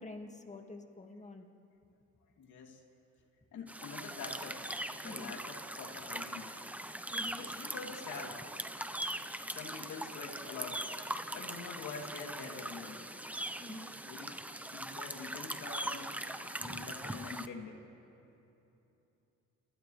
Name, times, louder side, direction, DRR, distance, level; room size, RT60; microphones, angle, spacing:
voice 1, 0.0-1.5 5.0-5.4 7.1-7.5 13.6-13.9, left 2 dB, 25° left, 3 dB, 2.1 m, -47 dB
voice 2, 2.4-2.8 3.5-4.7 4.9-6.8 7.4-8.4 9.5-10.8 11.3-13.1 14.1-14.4 14.7-16.1 16.4-17.8, left 4 dB, 75° left, 1 dB, 3.1 m, -46 dB
sound 1, 3.7-17.5, right 1 dB, 5° right, 0.9 m, -41 dB
29.5 x 29.5 x 3.4 m, 2.9 s
cardioid pair, 90°, 30 cm